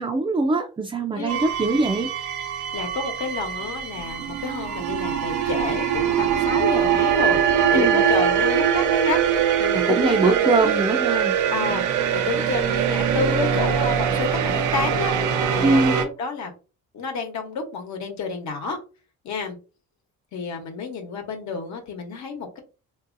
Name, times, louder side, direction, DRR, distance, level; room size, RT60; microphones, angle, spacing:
voice 1, 0.0-2.1 7.7-8.0 9.7-11.3 15.6-16.0, right 3 dB, 15° right, 3 dB, 0.4 m, -22 dB
sound 1, 1.3-16.0, right 8 dB, 85° right, 0.6 m, -22 dB
voice 2, 2.7-10.8 11.5-16.5 16.9-18.8 19.2-19.6 20.3-22.6, left 4 dB, 70° left, 4 dB, 1.1 m, -30 dB
3.6 x 2.7 x 2.5 m, 0.33 s
cardioid pair, 90°, 30 cm